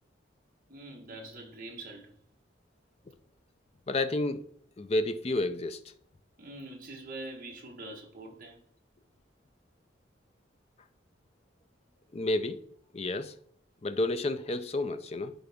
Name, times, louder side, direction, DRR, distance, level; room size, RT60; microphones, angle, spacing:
voice 1, 0.7-2.1 6.4-8.6, right 2 dB, 45° right, 1.6 m, -44 dB
voice 2, 3.9-4.4 4.8-5.8 12.1-12.6 12.9-13.3 13.8-15.3, left 2 dB, 30° left, 0.5 m, -30 dB
10.5 x 3.9 x 3.6 m
head